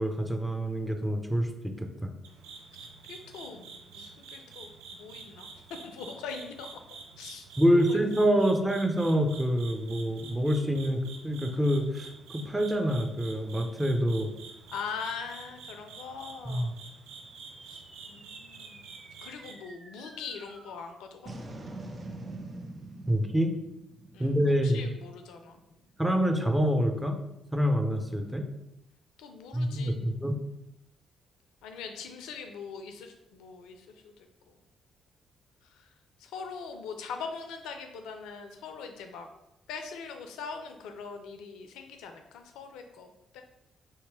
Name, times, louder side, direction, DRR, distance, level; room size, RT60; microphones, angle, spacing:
voice 1, 0.0-1.5 1.8-2.1 7.6-14.3 16.4-16.7 23.1-23.5 24.2-24.9 26.0-27.2 27.5-28.4 29.5-30.3, equal, 10° right, 4 dB, 0.7 m, -26 dB
sound 1, 2.2-19.5, right 5 dB, 75° right, 0.6 m, -48 dB
voice 2, 2.8-5.5 5.8-6.7 7.2-7.5 7.7-8.0 14.7-16.8 17.7-17.8 18.1-18.9 19.2-21.3 24.1-24.3 24.6-25.6 29.2-30.0 31.6-34.3 35.7-35.9 36.2-39.3 39.7-43.4, left 5 dB, 70° left, 5 dB, 0.4 m, -42 dB
sound 2, 17.2-25.8, right 2 dB, 40° right, 0.8 m, -46 dB
3.3 x 3.1 x 4.8 m, 0.88 s
figure-of-eight pair, 40°, 0 cm